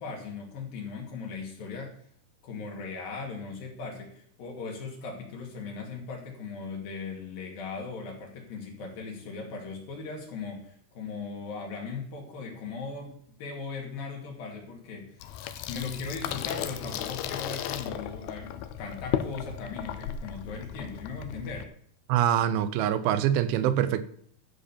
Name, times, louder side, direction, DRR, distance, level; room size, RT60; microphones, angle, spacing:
voice 1, 0.0-2.0 2.4-15.1 15.7-21.7, left 4 dB, 70° left, 4.0 m, -38 dB
Water tap faucet / Sink (filling or washing), 15.2-21.7, left 10 dB, 85° left, 2.5 m, -35 dB
voice 2, 22.1-24.0, right 10 dB, 80° right, 2.4 m, -24 dB
12.5 x 5.2 x 7.0 m
omnidirectional pair, 4.4 m